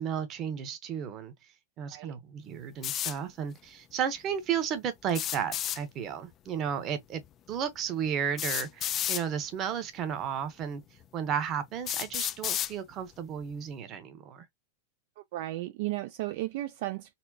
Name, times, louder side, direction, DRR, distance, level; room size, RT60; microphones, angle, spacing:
voice 1, 0.0-1.3 1.8-7.2 7.5-10.8 11.1-14.4, right 8 dB, 30° right, 1.0 m, -33 dB
sound 1, 2.8-3.2 5.1-5.8 7.2-7.3 8.4-9.2 10.2-10.3 11.0-11.1 11.9-12.7, left 11 dB, 30° left, 0.3 m, -31 dB
voice 2, 15.3-17.1, right 16 dB, 60° right, 0.4 m, -34 dB
4.2 x 2.1 x 2.8 m
supercardioid pair, 140°, 0 cm